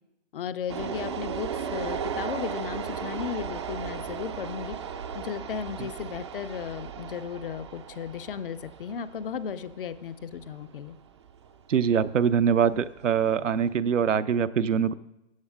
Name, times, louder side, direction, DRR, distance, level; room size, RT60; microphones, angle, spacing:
voice 1, 0.3-4.8 5.1-11.0, left 7 dB, 45° left, 12 dB, 0.6 m, -35 dB
sound 1, 0.7-13.8, right 7 dB, 25° right, 0.4 m, -37 dB
voice 2, 11.7-14.9, right 7 dB, 85° right, 12 dB, 0.7 m, -23 dB
14.0 x 8.2 x 3.6 m, 0.89 s
hypercardioid pair, 135°, 37 cm